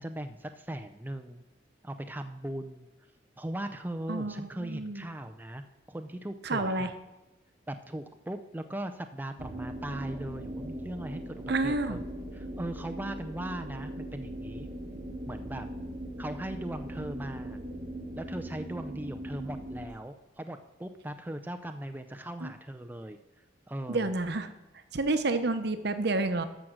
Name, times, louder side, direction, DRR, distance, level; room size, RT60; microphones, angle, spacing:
voice 1, 0.0-1.4 1.8-2.9 3.4-6.9 7.7-12.0 12.3-14.7 15.3-15.7 16.2-17.6 18.2-24.1, right 1 dB, 10° right, 7 dB, 0.4 m, -39 dB
voice 2, 4.1-5.1 6.4-6.9 11.5-12.0 22.4-22.5 23.9-24.5 24.9-26.4, right 2 dB, 60° right, 10 dB, 0.9 m, -29 dB
sound 1, 9.4-19.9, right 1 dB, 40° right, 1.1 m, -40 dB
13.5 x 6.3 x 6.2 m, 1.1 s
head